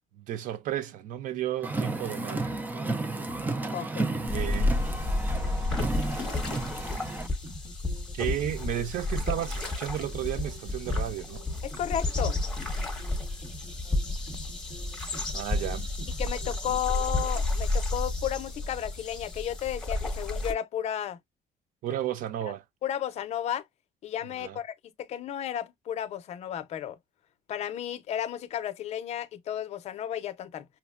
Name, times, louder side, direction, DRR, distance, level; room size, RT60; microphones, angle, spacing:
voice 1, 0.1-2.6 4.3-4.8 8.1-11.4 15.3-15.8 16.7-16.8 21.8-22.6 24.3-24.6, right 12 dB, 65° right, 0.5 m, -33 dB
Car, 1.6-7.3, right 2 dB, 10° right, 0.4 m, -33 dB
sound 1, 1.9-16.6, equal, 30° right, 1.0 m, -45 dB
voice 2, 3.7-4.1 11.6-12.4 16.2-21.2 22.8-23.6 24.0-27.0 27.5-30.7, left 10 dB, 50° left, 0.6 m, -33 dB
sound 2, 4.3-20.5, left 2 dB, 5° left, 1.1 m, -31 dB
5.7 x 2.1 x 2.3 m
cardioid pair, 160°, 14 cm